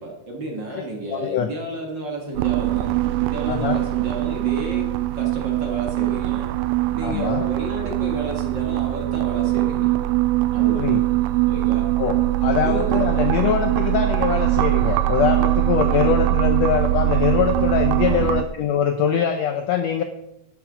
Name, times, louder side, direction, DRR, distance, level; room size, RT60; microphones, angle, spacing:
voice 1, 0.0-6.5 6.9-10.0 10.5-11.0 11.5-12.0 12.6-13.4 15.9-16.2 18.0-18.3, right 1 dB, 40° right, 0 dB, 2.0 m, -32 dB
voice 2, 0.7-1.5 3.5-3.8 7.0-7.5 10.7-11.0 12.0-20.0, left 8 dB, 80° left, 7 dB, 1.6 m, -23 dB
sound 1, 2.4-18.4, right 16 dB, 90° right, 2.2 m, -22 dB
12.0 x 9.7 x 4.9 m, 0.85 s
omnidirectional pair, 3.8 m